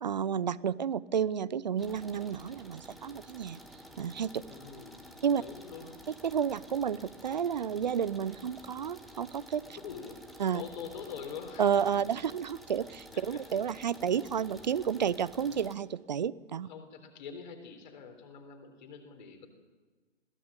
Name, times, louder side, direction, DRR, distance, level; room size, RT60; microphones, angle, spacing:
voice 1, 0.0-3.6 4.0-4.4 5.2-5.4 6.2-9.6 10.4-10.6 11.6-16.7, right 8 dB, 35° right, 20 dB, 0.6 m, -31 dB
sound 1, 1.8-15.7, equal, ahead, 1.3 m, -51 dB
voice 2, 4.5-5.1 5.3-6.0 9.7-11.9 12.2-12.4 13.1-13.4 16.6-19.5, left 6 dB, 40° left, 5 dB, 3.8 m, -45 dB
22.0 x 15.5 x 8.9 m, 1.4 s
figure-of-eight pair, 135°, 36 cm